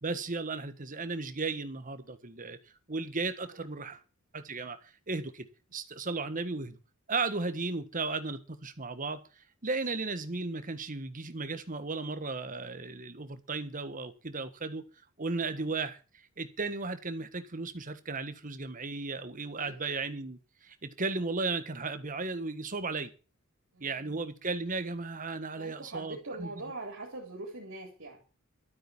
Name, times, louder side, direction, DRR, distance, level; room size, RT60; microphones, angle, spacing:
voice 1, 0.0-2.6 2.9-4.0 4.3-4.8 5.1-6.8 7.1-9.2 9.6-14.8 15.2-16.0 16.4-23.1 23.8-26.5, right 3 dB, 40° right, 1.4 m, -35 dB
voice 2, 23.7-24.2 25.6-28.2, right 2 dB, 60° right, 4.1 m, -43 dB
12.5 x 8.9 x 7.2 m
head